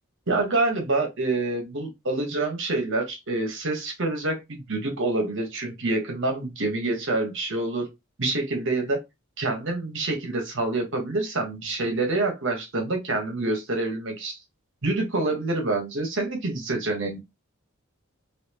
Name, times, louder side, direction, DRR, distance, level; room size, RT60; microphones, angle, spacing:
voice 1, 0.3-7.9 8.2-9.0 9.4-14.4 14.8-17.2, right 2 dB, 60° right, 1.2 m, -27 dB
4.2 x 2.8 x 2.9 m
head